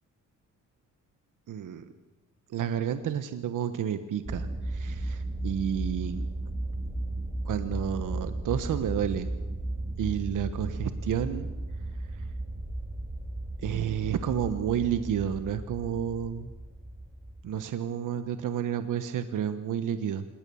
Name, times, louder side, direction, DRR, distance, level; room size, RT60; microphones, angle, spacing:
voice 1, 1.5-1.9 2.5-6.2 7.4-9.3 10.0-11.5 12.1-12.2 13.6-16.5 17.4-20.3, right 9 dB, 75° right, 10 dB, 1.3 m, -31 dB
sound 1, 4.2-17.4, right 1 dB, 15° right, 4.1 m, -35 dB
26.5 x 21.0 x 7.1 m, 1.1 s
cardioid pair, 105°, 32 cm